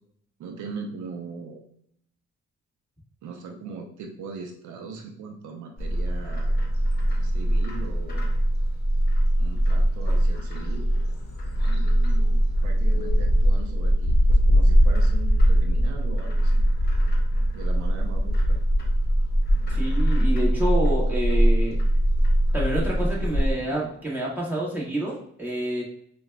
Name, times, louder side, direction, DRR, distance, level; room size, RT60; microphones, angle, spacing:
voice 1, 0.4-1.6 3.2-6.5 7.2-8.3 9.4-10.9 11.6-16.6 17.5-18.6, right 5 dB, 75° right, 3 dB, 0.6 m, -39 dB
Bird, 5.8-23.5, equal, 35° left, 0.9 m, -21 dB
voice 2, 19.7-21.8 22.5-25.8, right 1 dB, 5° right, -5 dB, 1.4 m, -28 dB
4.7 x 2.3 x 2.2 m, 0.68 s
cardioid pair, 90°, 30 cm